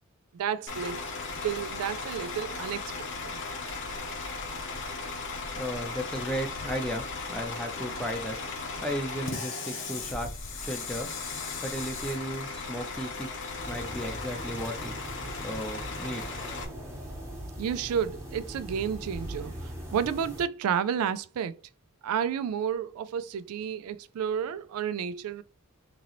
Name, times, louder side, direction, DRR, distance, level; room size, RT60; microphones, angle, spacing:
voice 1, 0.3-1.0 1.4-2.9 3.2-3.4 17.6-21.6 22.0-25.4, right 8 dB, 80° right, 0.3 m, -31 dB
Bus / Idling, 0.7-16.6, left 4 dB, 55° left, 0.8 m, -37 dB
voice 2, 5.5-8.4 8.8-11.1 11.6-13.3 13.7-15.0 15.4-16.5, equal, 5° left, 0.6 m, -35 dB
sound 1, 13.6-20.4, equal, 15° right, 0.9 m, -40 dB
3.8 x 2.9 x 2.9 m
head